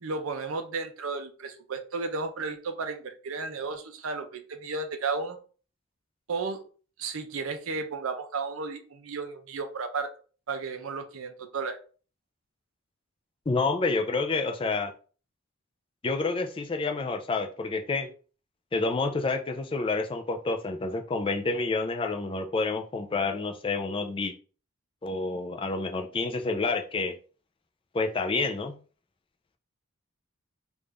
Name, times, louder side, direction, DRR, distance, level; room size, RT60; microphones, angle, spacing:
voice 1, 0.0-5.4 6.3-6.6 7.0-10.1 10.5-11.8, right 4 dB, 75° right, 0.6 m, -33 dB
voice 2, 13.5-14.9 16.0-18.1 18.7-24.3 25.0-27.2 27.9-28.8, left 3 dB, 25° left, 0.4 m, -29 dB
3.5 x 2.5 x 3.2 m
head